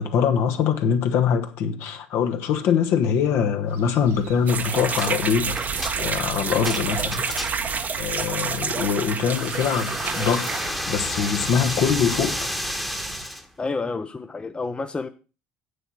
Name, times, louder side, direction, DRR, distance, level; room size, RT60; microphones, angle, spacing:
voice 1, 0.0-5.6 6.0-7.4 8.0-12.5, left 7 dB, 60° left, 1.4 m, -23 dB
sound 1, 3.7-13.3, right 9 dB, 60° right, 0.9 m, -40 dB
sound 2, 4.5-10.7, right 5 dB, 35° right, 1.0 m, -28 dB
sound 3, 5.0-5.2 5.6-7.8 9.2-13.5, equal, ahead, 1.3 m, -31 dB
voice 2, 13.6-15.1, left 3 dB, 20° left, 0.8 m, -29 dB
8.3 x 6.9 x 6.3 m
hypercardioid pair, 65°, 5 cm